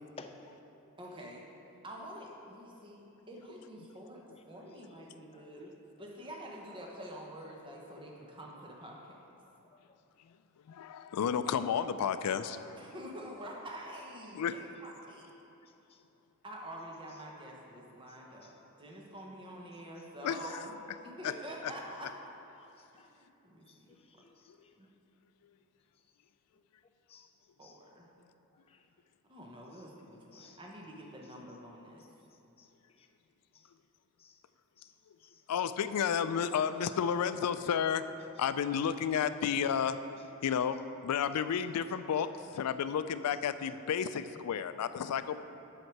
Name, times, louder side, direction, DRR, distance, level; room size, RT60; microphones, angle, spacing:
voice 1, 1.0-1.5 1.8-4.2 4.5-9.2 12.7-15.3 16.4-20.8 21.0-22.1 22.9-24.0 24.8-24.9 27.6-28.1 29.2-32.0, equal, 20° right, -2 dB, 0.9 m, -47 dB
voice 2, 10.7-12.8 14.3-14.6 20.2-20.4 21.2-21.3 35.5-38.0 38.4-40.0 40.4-40.8 41.0-42.3 42.5-45.4, left 8 dB, 90° left, 12 dB, 0.4 m, -31 dB
voice 3, 22.6-23.1 23.7-24.8 27.1-27.3 27.6-27.8 28.7-28.8 30.3-30.6 32.6-32.7 33.0-33.1 33.5-33.7 34.2-34.4 34.8-34.9 35.2-35.4 40.3-40.5, left 4 dB, 25° left, 5 dB, 0.4 m, -56 dB
7.8 x 6.6 x 4.6 m, 2.9 s
head